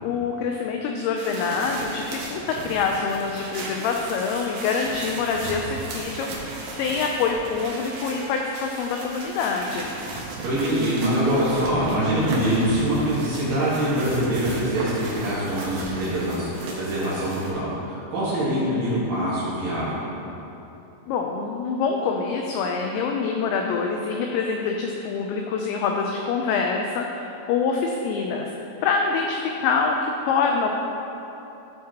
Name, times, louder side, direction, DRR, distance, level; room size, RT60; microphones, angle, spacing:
voice 1, 0.0-6.5 6.8-10.0 21.1-28.5 28.8-30.7, left 5 dB, 90° left, 2 dB, 2.5 m, -25 dB
sound 1, 1.2-17.5, right 2 dB, 85° right, 4.0 m, -36 dB
voice 2, 10.4-16.5 16.7-20.0, right 1 dB, 60° right, -9 dB, 2.6 m, -24 dB
14.5 x 7.4 x 2.9 m, 3.0 s
omnidirectional pair, 5.8 m